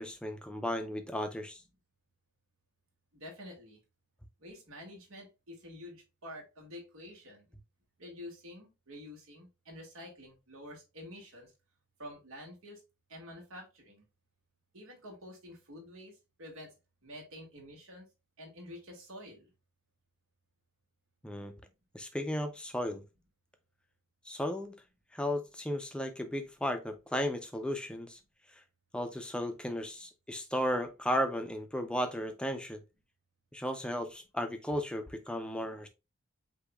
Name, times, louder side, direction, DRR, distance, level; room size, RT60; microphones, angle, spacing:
voice 1, 0.0-1.6 21.2-21.5 21.9-23.0 24.3-24.7 25.1-28.2 28.9-32.8 33.5-35.9, equal, 5° left, 0.5 m, -35 dB
voice 2, 3.1-3.8 4.4-7.5 8.0-11.5 12.0-12.8 13.1-14.1 14.7-16.7 17.0-18.1 18.4-19.5, left 1 dB, 80° right, 1.9 m, -48 dB
8.1 x 2.8 x 2.3 m
head